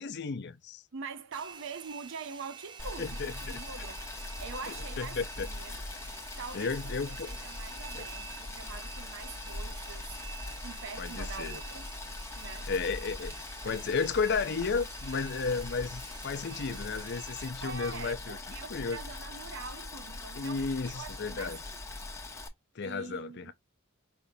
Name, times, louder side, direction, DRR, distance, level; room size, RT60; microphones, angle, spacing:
voice 1, 0.0-0.8 3.0-3.6 4.7-5.5 6.5-7.3 7.9-8.0 11.0-11.6 12.7-13.4 13.6-18.4 18.7-19.0 20.4-21.6 22.8-23.5, left 4 dB, 55° left, 0.6 m, -33 dB
voice 2, 0.9-4.0 4.4-5.8 6.4-10.2 10.6-11.9 12.4-12.7 17.6-21.8 22.8-23.5, right 5 dB, 65° right, 0.6 m, -44 dB
Domestic sounds home sounds, 1.3-17.5, right 6 dB, 25° right, 0.5 m, -49 dB
Boiling, 2.8-22.5, left 2 dB, 15° left, 0.9 m, -41 dB
5.0 x 3.5 x 2.7 m
head